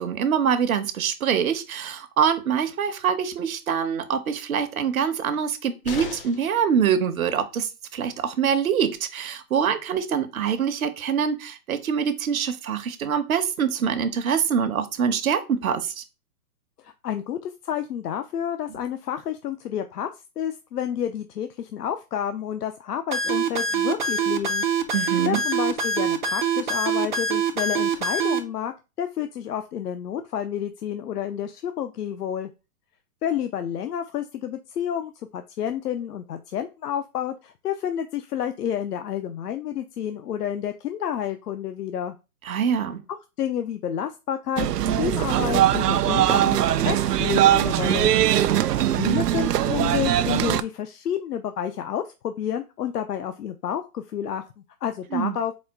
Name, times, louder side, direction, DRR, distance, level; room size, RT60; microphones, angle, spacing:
voice 1, 0.0-16.0 24.9-25.4 42.4-43.0 55.1-55.4, right 7 dB, 65° right, 10 dB, 0.9 m, -24 dB
sound 1, 5.8-6.6 8.5-8.6 8.9-9.0, left 5 dB, 40° left, 0.6 m, -36 dB
voice 2, 16.8-20.1 20.4-24.6 25.2-32.5 33.2-42.1 43.4-44.7 45.0-48.1 49.0-54.4 54.8-55.5, left 9 dB, 80° left, 8 dB, 0.6 m, -30 dB
sound 2, 23.1-28.4, right 5 dB, 35° right, 0.4 m, -24 dB
sound 3, 44.6-50.6, right 11 dB, 85° right, 0.6 m, -21 dB
4.2 x 2.3 x 4.5 m, 0.28 s
hypercardioid pair, 155°, 46 cm